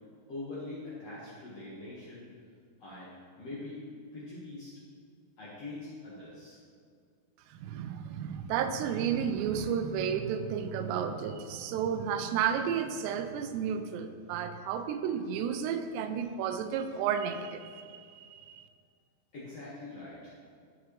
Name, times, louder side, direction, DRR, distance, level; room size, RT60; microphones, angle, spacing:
voice 1, 0.3-2.3 2.8-3.1 3.4-3.8 4.1-4.7 5.4-6.6 19.3-20.3, left 2 dB, 55° left, -8 dB, 1.8 m, -43 dB
voice 2, 7.5-18.7, right 7 dB, 85° right, 8 dB, 2.8 m, -32 dB
13.5 x 6.1 x 3.2 m, 2.1 s
omnidirectional pair, 4.9 m